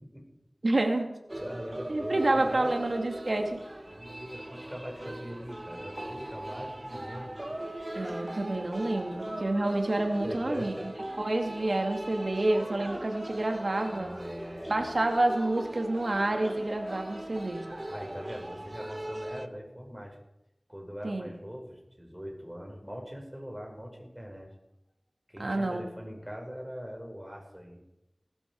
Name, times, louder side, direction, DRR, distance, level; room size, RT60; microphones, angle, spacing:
voice 1, 0.6-1.2 1.9-3.6 7.9-10.7 11.2-14.1 14.7-17.7 21.0-21.4 25.4-25.8, right 2 dB, 70° right, 3 dB, 2.5 m, -28 dB
sound 1, 1.3-19.5, right 1 dB, 30° right, 1.0 m, -40 dB
voice 2, 1.4-2.7 3.9-7.3 10.2-10.9 13.8-14.8 17.9-20.2 20.7-24.5 25.3-27.8, equal, 10° right, 0 dB, 5.4 m, -41 dB
19.5 x 12.5 x 4.8 m, 0.89 s
wide cardioid pair, 50°, 0 cm